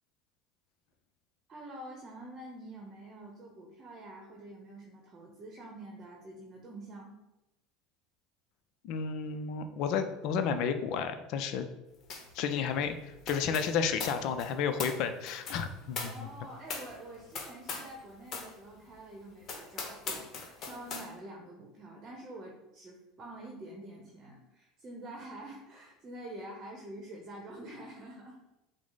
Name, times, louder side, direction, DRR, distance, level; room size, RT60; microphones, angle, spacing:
voice 1, 1.5-7.1 16.0-28.6, right 1 dB, 35° right, 0 dB, 0.9 m, -47 dB
voice 2, 8.8-11.7 12.3-16.1, left 6 dB, 60° left, 8 dB, 0.4 m, -32 dB
sound 1, 12.1-12.4 12.6-18.0 18.3-18.5 19.0-19.1 19.4-21.1, left 4 dB, 45° left, 0.9 m, -41 dB
5.9 x 2.1 x 4.0 m, 0.95 s
hypercardioid pair, 80°, 0 cm